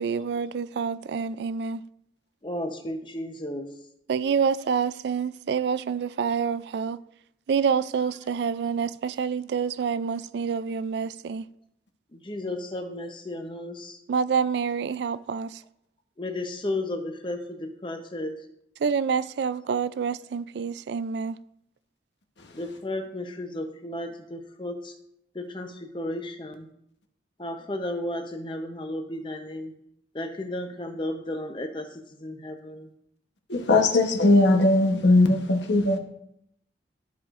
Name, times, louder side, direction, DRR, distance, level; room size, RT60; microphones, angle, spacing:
voice 1, 0.0-1.8 4.1-7.0 7.5-11.5 14.1-15.6 18.8-21.4, right 6 dB, 70° right, 0.3 m, -27 dB
voice 2, 2.4-3.7 12.1-14.0 16.2-18.4 22.5-24.9 25.3-26.7 27.4-29.7 30.1-31.9 32.2-32.9, left 1 dB, 25° left, 0.7 m, -33 dB
voice 3, 33.5-36.0, left 2 dB, 75° left, 1.0 m, -19 dB
13.5 x 4.9 x 2.5 m
head